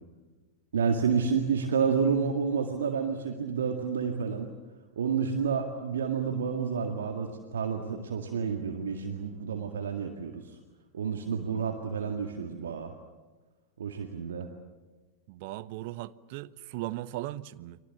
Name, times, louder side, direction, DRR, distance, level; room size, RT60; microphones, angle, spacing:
voice 1, 0.7-4.5 5.0-10.6 10.9-12.9 13.8-14.5, right 6 dB, 65° right, 2.0 m, -30 dB
voice 2, 15.3-17.8, right 16 dB, 50° right, 0.8 m, -38 dB
29.5 x 24.0 x 7.3 m
figure-of-eight pair, 90°, 0 cm